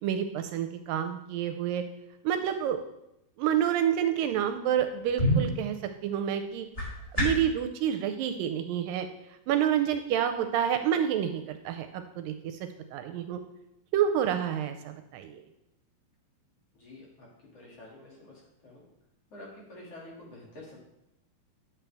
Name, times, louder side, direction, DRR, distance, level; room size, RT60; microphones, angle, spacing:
voice 1, 0.0-1.8 2.2-2.8 3.4-5.8 6.0-6.7 7.1-9.1 9.5-12.6 12.9-13.4 13.9-15.4, right 9 dB, 80° right, 7 dB, 2.1 m, -28 dB
sound 1, 4.7-7.6, equal, 15° left, 1.4 m, -30 dB
voice 2, 16.7-17.3 17.5-18.3 18.6-18.8 19.3-20.8, left 1 dB, 45° left, -4 dB, 3.1 m, -48 dB
10.5 x 7.3 x 3.4 m, 0.85 s
omnidirectional pair, 4.1 m